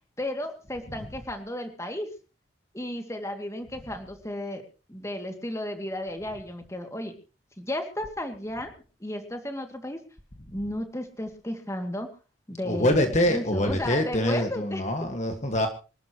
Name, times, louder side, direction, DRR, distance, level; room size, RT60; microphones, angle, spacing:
voice 1, 0.2-2.1 2.7-4.6 4.9-7.1 7.6-8.7 9.0-10.0 10.5-12.1 12.5-12.9 13.3-14.8, left 1 dB, 15° left, 5 dB, 2.4 m, -33 dB
voice 2, 12.6-15.7, left 1 dB, 35° left, 5 dB, 1.7 m, -25 dB
26.0 x 13.0 x 3.1 m, 0.34 s
head